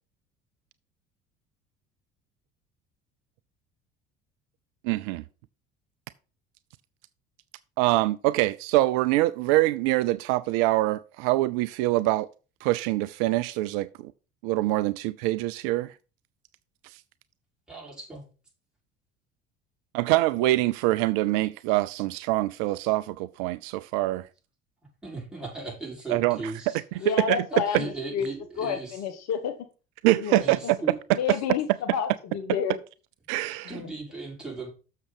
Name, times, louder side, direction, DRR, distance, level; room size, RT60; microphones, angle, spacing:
voice 1, 4.8-5.2 7.8-12.3 12.6-14.1 14.4-15.9 19.9-24.3 26.1-26.4 27.0-27.4 30.0-30.8 31.3-31.4 33.3-33.7, right 18 dB, 60° right, 0.5 m, -24 dB
voice 2, 17.7-18.2 25.0-27.2 27.5-29.0 30.4-30.9 31.3-31.4 33.7-34.7, right 3 dB, ahead, 5.7 m, -38 dB
voice 3, 27.0-28.3 28.6-29.6 30.1-30.4 31.1-32.8 33.7-33.9, left 8 dB, 55° left, 1.2 m, -30 dB
6.9 x 6.6 x 5.2 m
figure-of-eight pair, 60°, 32 cm